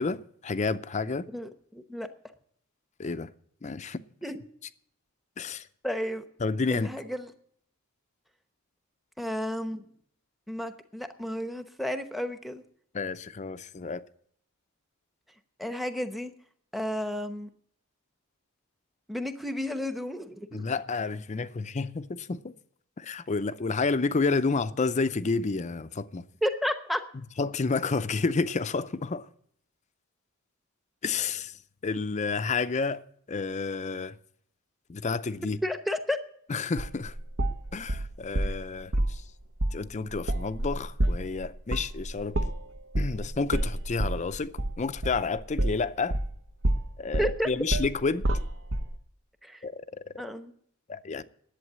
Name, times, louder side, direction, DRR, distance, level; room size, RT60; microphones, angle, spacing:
voice 1, 0.0-1.3 3.0-3.3 3.6-4.0 5.4-5.7 6.4-6.9 12.9-14.0 20.5-22.5 23.0-26.3 27.4-29.3 31.0-33.0 33.3-34.2 34.9-35.6 36.5-37.1 37.7-39.2 39.7-42.4 42.9-46.2 47.0-48.2 49.6-50.2 50.9-51.2, left 4 dB, 35° left, 0.5 m, -30 dB
voice 2, 1.3-2.1 4.2-4.4 5.8-6.2 6.7-7.3 9.2-9.9 10.5-12.6 15.6-16.3 16.7-17.5 19.1-20.6 26.4-27.0 35.6-36.2 47.2-47.5 49.4-49.6 50.2-50.5, equal, ahead, 0.9 m, -32 dB
sound 1, 36.8-38.6 38.9-39.2 39.6-39.8 40.1-46.4 46.6-48.9, right 1 dB, 60° right, 0.9 m, -28 dB
11.0 x 8.3 x 9.7 m
head